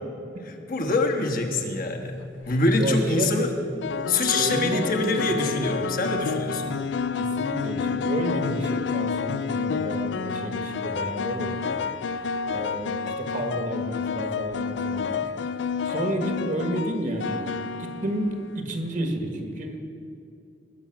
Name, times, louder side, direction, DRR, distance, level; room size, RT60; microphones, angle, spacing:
voice 1, 0.7-3.5 4.1-6.8, left 2 dB, 55° left, 3 dB, 1.3 m, -25 dB
sound 1, 2.2-2.6 3.8-18.6, left 5 dB, 80° left, 0.4 m, -29 dB
voice 2, 2.7-3.3 4.3-5.7 7.1-11.7 12.1-15.3 15.8-17.5 17.8-18.3 18.5-19.8, right 1 dB, 50° right, 4 dB, 1.5 m, -31 dB
20.5 x 7.2 x 5.9 m, 2.6 s
head